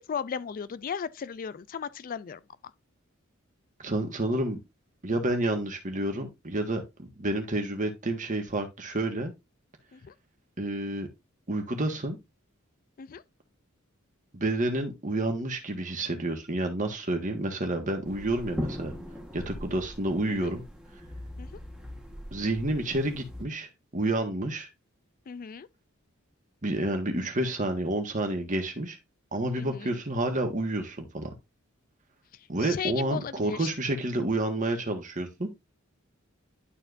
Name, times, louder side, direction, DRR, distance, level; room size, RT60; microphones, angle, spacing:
voice 1, 0.0-2.4 9.9-10.1 13.0-13.2 20.3-20.5 21.4-21.6 25.3-25.7 29.6-30.0 32.6-33.7, left 7 dB, 40° left, 0.4 m, -36 dB
voice 2, 3.8-4.6 5.0-9.3 10.6-11.1 11.5-12.2 14.3-18.9 19.3-20.6 22.3-24.7 26.6-29.0 29.3-31.3 32.5-35.5, right 1 dB, 40° right, 1.6 m, -29 dB
sound 1, 18.0-23.4, left 1 dB, 5° right, 1.7 m, -40 dB
11.5 x 4.4 x 2.6 m
head